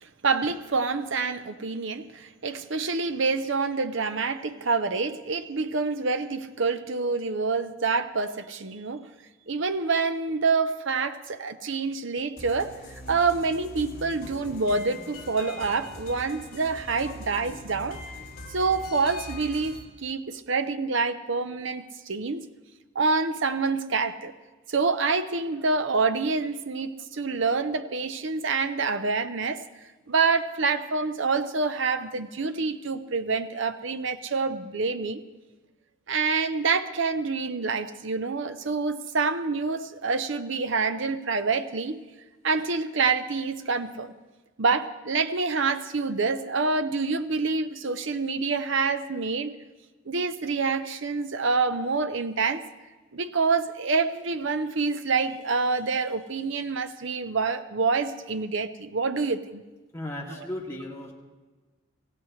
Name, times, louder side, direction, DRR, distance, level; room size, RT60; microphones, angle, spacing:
voice 1, 0.0-9.1 9.5-12.8 13.1-18.0 18.5-22.5 22.9-24.3 24.7-29.6 30.1-35.2 36.1-42.0 42.4-44.1 44.6-49.5 50.1-52.7 53.1-59.6, right 4 dB, 60° right, 9 dB, 0.7 m, -27 dB
sound 1, 12.4-19.8, left 1 dB, 45° left, 4.7 m, -42 dB
voice 2, 59.9-61.1, left 1 dB, 15° left, -4 dB, 2.5 m, -35 dB
26.5 x 16.5 x 3.2 m, 1.3 s
head